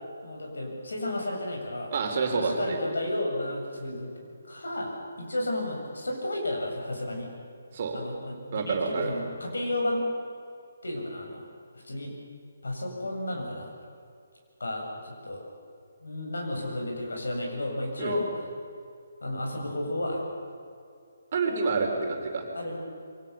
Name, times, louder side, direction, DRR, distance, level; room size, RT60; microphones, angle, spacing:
voice 1, 0.2-1.9 2.2-4.1 4.5-4.9 5.2-7.3 7.9-10.0 10.8-11.4 11.8-12.1 12.6-13.7 14.6-15.4 16.0-18.2 19.2-20.2 22.5-22.8, left 1 dB, 65° left, 1 dB, 7.3 m, -32 dB
voice 2, 1.9-2.8 7.7-8.0 8.5-9.1 18.0-18.2 21.3-22.4, right 4 dB, 35° right, 2 dB, 4.0 m, -28 dB
27.5 x 24.0 x 7.0 m, 2.4 s
figure-of-eight pair, 140°, 0 cm